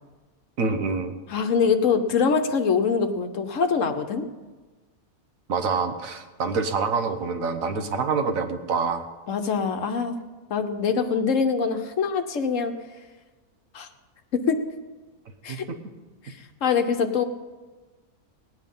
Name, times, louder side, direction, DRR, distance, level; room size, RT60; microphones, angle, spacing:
voice 1, 0.6-1.2 5.5-9.1 15.5-15.6, right 4 dB, 65° right, 7 dB, 1.4 m, -26 dB
voice 2, 1.3-4.2 9.3-10.2 10.5-12.7 13.7-13.9 14.3-14.6 15.4-15.6 16.2-16.3 16.6-17.2, left 5 dB, 60° left, 7 dB, 1.2 m, -24 dB
17.5 x 9.6 x 5.4 m, 1.3 s
omnidirectional pair, 1.6 m